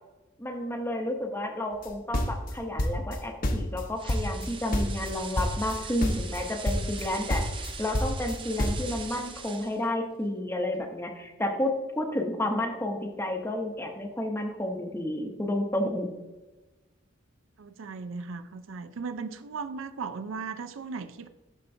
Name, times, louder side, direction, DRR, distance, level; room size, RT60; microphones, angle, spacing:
voice 1, 0.4-16.1, left 1 dB, 10° left, 3 dB, 0.7 m, -31 dB
sound 1, 1.8-3.2 3.4-4.5 4.7-5.1 5.4-5.8 6.0-6.4 6.6-7.0 7.3-8.9, left 1 dB, 40° left, 0.8 m, -28 dB
sound 2, 4.0-9.9, right 5 dB, 25° right, 0.5 m, -42 dB
voice 2, 17.6-21.3, right 4 dB, 80° right, 11 dB, 0.5 m, -37 dB
12.5 x 4.4 x 2.6 m, 1.1 s
head